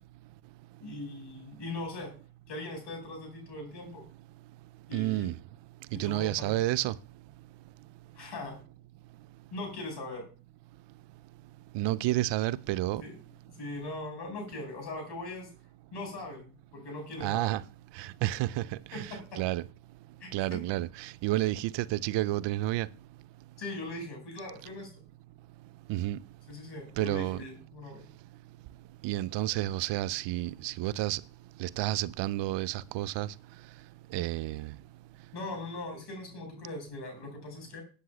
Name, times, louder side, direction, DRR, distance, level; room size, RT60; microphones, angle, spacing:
voice 1, 0.8-2.1 2.5-4.0 4.9-5.3 5.9-6.6 8.1-8.6 9.5-10.3 13.0-13.2 13.5-15.5 15.9-17.5 18.9-19.4 20.2-20.6 23.6-25.0 26.5-28.1 35.3-37.8, left 2 dB, 70° left, 5.1 m, -40 dB
voice 2, 4.9-5.3 5.9-6.9 11.7-13.0 17.2-17.6 18.0-18.7 18.9-19.6 20.3-22.9 25.9-26.2 27.0-27.4 29.0-31.2 31.6-33.3 34.1-34.7, right 16 dB, 80° right, 0.5 m, -30 dB
22.0 x 8.3 x 2.3 m
supercardioid pair, 45°, 42 cm